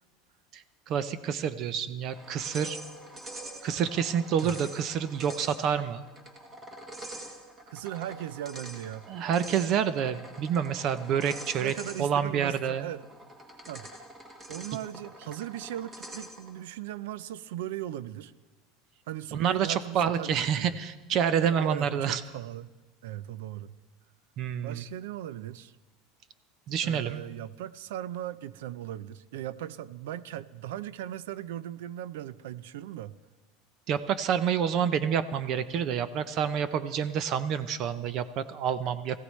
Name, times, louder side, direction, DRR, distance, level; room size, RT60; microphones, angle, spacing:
voice 1, 0.5-2.8 3.6-6.1 9.1-11.7 12.0-12.9 19.3-22.2 24.4-24.8 26.7-27.3 33.9-39.2, right 8 dB, 40° right, 13 dB, 0.5 m, -28 dB
sound 1, 2.1-16.6, right 1 dB, 10° right, 1.5 m, -45 dB
voice 2, 7.7-9.1 11.5-13.0 13.6-13.9 14.5-18.3 19.1-20.8 21.4-22.7 23.0-23.7 24.6-25.7 26.8-33.2, right 12 dB, 85° right, 17 dB, 0.5 m, -38 dB
21.5 x 15.5 x 3.2 m, 1.2 s
supercardioid pair, 165°, 0 cm